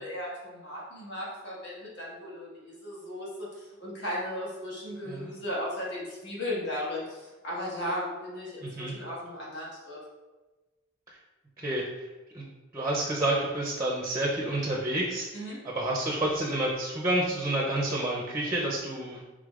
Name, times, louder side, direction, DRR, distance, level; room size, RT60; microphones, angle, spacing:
voice 1, 0.0-10.0 15.3-15.6, left 1 dB, 60° left, -6 dB, 1.4 m, -36 dB
voice 2, 8.6-8.9 11.6-11.9 12.3-12.4 12.7-15.3 15.6-19.2, right 1 dB, 15° right, -2 dB, 0.5 m, -29 dB
4.9 x 3.7 x 2.4 m, 1.2 s
head